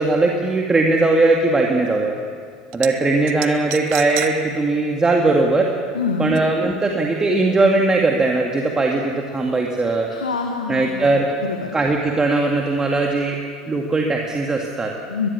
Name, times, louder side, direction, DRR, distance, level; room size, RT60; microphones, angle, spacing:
voice 1, 0.0-2.2 2.7-5.7 6.2-10.1 10.7-11.3 11.7-13.4 13.7-14.9, right 2 dB, 15° right, 1 dB, 2.2 m, -19 dB
sound 1, 2.7-2.9 3.3-4.3 4.7-4.8 6.3-6.4, right 16 dB, 55° right, 1.2 m, -29 dB
voice 2, 5.9-6.4 10.1-11.1 11.4-11.7 15.1-15.3, left 5 dB, 85° left, 4 dB, 1.6 m, -25 dB
22.0 x 21.5 x 7.1 m, 2.2 s
figure-of-eight pair, 80°, 4 cm